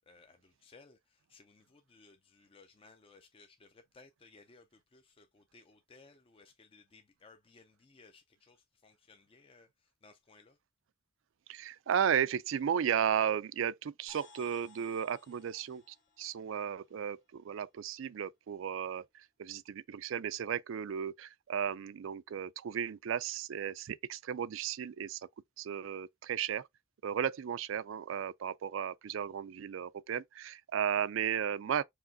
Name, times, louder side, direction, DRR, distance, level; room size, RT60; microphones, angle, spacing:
voice 1, 0.1-10.6, left 3 dB, 25° left, 0.4 m, -60 dB
voice 2, 11.5-25.2 25.6-26.7 27.0-31.8, right 8 dB, 70° right, 0.4 m, -34 dB
sound 1, 14.1-17.8, left 5 dB, 65° left, 1.7 m, -61 dB
4.8 x 3.3 x 2.6 m
head